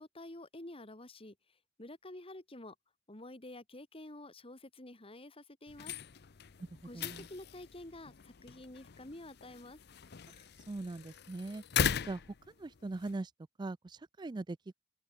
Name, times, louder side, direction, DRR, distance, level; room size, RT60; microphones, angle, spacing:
voice 1, 0.0-1.4 1.8-2.8 3.1-5.9 6.8-9.8, left 1 dB, 30° left, 2.3 m, -49 dB
sound 1, 5.7-13.2, left 7 dB, 60° left, 0.7 m, -39 dB
voice 2, 6.9-7.3 10.3-10.4 10.7-11.6 12.0-12.2 12.6-13.3 13.6-14.7, right 2 dB, 25° right, 0.4 m, -41 dB
open air
head